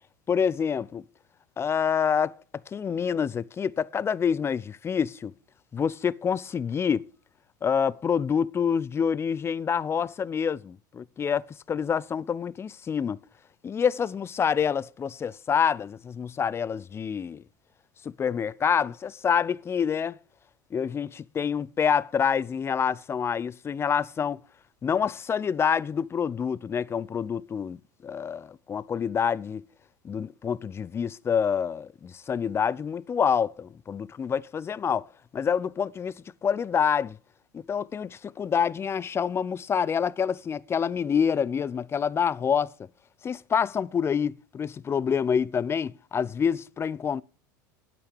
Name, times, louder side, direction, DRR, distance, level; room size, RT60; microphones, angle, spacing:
voice 1, 0.3-1.0 1.6-2.4 2.7-5.3 5.7-7.0 7.6-13.2 13.6-17.4 18.2-20.2 20.7-24.4 24.8-29.6 30.0-35.1 35.3-36.1 36.4-37.2 37.5-42.7 43.2-47.2, left 7 dB, 25° left, 0.6 m, -27 dB
9.2 x 8.8 x 8.3 m
hypercardioid pair, 85°, 10 cm